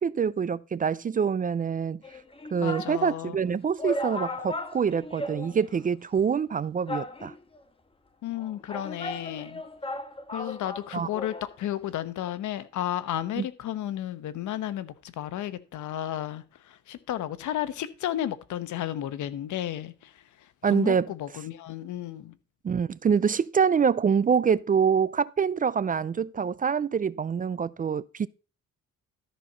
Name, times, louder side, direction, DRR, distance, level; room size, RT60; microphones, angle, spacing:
voice 1, 0.0-2.0 2.5-7.3 10.9-11.1 13.4-13.5 20.6-21.1 22.6-28.3, right 6 dB, 30° right, 0.4 m, -25 dB
sound 1, 2.0-3.0 3.5-3.6 3.8-5.8 6.1-6.2 6.9-7.6 8.4-11.5 11.8-11.9, left 1 dB, 20° left, 1.3 m, -36 dB
voice 2, 2.6-3.4 8.2-9.6 10.3-20.1 20.6-22.4, left 12 dB, 75° left, 1.0 m, -33 dB
13.0 x 4.4 x 5.6 m
cardioid pair, 90°, 30 cm